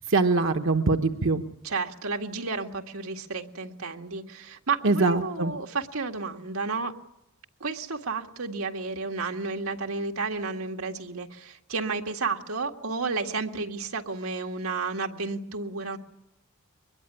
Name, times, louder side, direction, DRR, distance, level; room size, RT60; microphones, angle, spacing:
voice 1, 0.0-1.4 4.8-5.5, right 3 dB, 65° right, 6 dB, 1.1 m, -23 dB
voice 2, 1.6-6.9 7.6-16.0, right 4 dB, 90° right, 4 dB, 2.0 m, -32 dB
23.5 x 21.0 x 9.9 m, 0.85 s
head